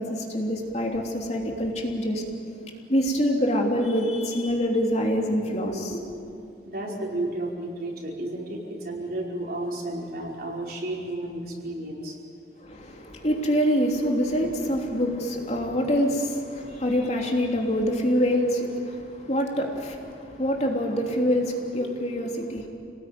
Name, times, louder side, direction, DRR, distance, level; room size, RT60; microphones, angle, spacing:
voice 1, 0.0-2.2 2.9-6.0 12.6-22.7, equal, 40° left, 0 dB, 3.2 m, -25 dB
voice 2, 6.7-12.2, right 1 dB, 55° right, -2 dB, 5.2 m, -32 dB
28.5 x 19.0 x 9.6 m, 2.6 s
head